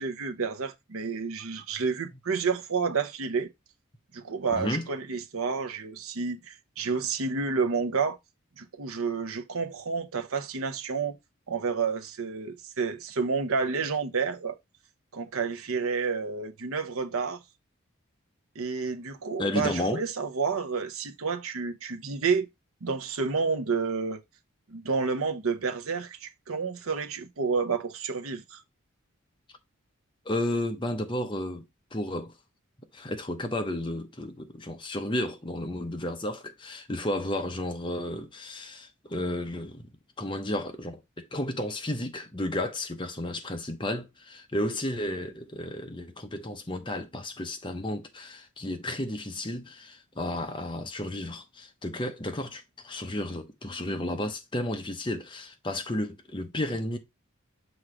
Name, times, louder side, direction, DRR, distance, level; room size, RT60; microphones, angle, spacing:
voice 1, 0.0-3.5 4.1-8.2 8.6-11.2 11.5-14.6 15.1-17.4 18.6-22.5 22.8-24.2 24.7-28.6, right 5 dB, 85° right, 0.8 m, -30 dB
voice 2, 4.5-4.9 19.4-20.0 30.3-31.6 31.9-32.3 32.9-39.9 40.2-57.0, left 1 dB, 20° left, 0.8 m, -32 dB
6.3 x 3.1 x 4.9 m
head